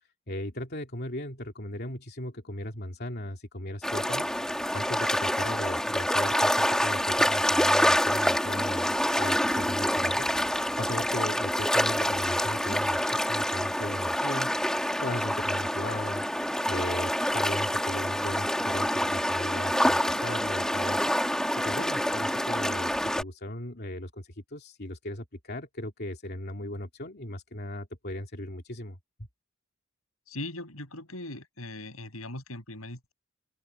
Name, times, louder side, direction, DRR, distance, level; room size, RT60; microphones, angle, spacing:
voice 1, 0.3-4.4 4.7-10.3 10.8-14.5 15.0-16.2 16.7-21.2 21.6-29.0, left 1 dB, 50° left, 2.9 m, -37 dB
sound 1, 3.8-23.2, equal, 5° left, 2.6 m, -27 dB
voice 2, 30.3-33.1, left 1 dB, 85° left, 7.5 m, -39 dB
open air
head